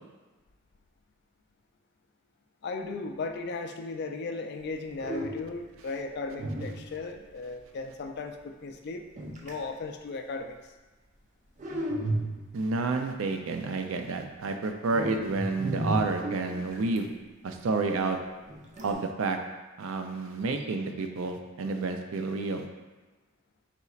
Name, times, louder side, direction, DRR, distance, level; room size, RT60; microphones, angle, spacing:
voice 1, 2.6-9.1 9.4-10.7, left 3 dB, 55° left, 5 dB, 0.4 m, -36 dB
sound 1, 4.6-4.7 5.0-5.6 6.4-7.3 9.2-9.7 11.6-12.7 14.8-17.0 18.5-18.9, right 1 dB, 35° right, 0.5 m, -33 dB
voice 2, 12.5-17.1 17.4-18.2 18.8-19.4 19.8-22.7, right 3 dB, 90° right, 5 dB, 0.4 m, -30 dB
4.3 x 3.9 x 2.4 m, 1.2 s
head